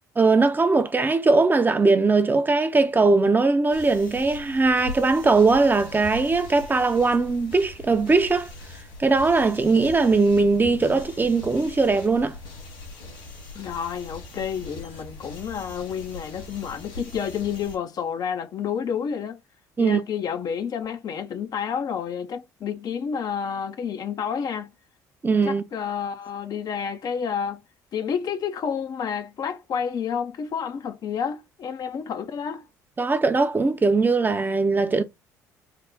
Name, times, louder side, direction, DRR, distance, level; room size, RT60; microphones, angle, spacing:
voice 1, 0.2-8.5 9.0-12.3 19.8-20.0 25.2-25.6 33.0-35.0, right 3 dB, 20° right, 0.6 m, -20 dB
sound 1, 3.7-17.8, left 2 dB, 70° left, 2.0 m, -41 dB
voice 2, 13.5-19.4 19.8-24.7 25.4-27.6 27.9-32.6, left 7 dB, 45° left, 0.6 m, -30 dB
3.7 x 2.2 x 3.4 m
hypercardioid pair, 55°, 9 cm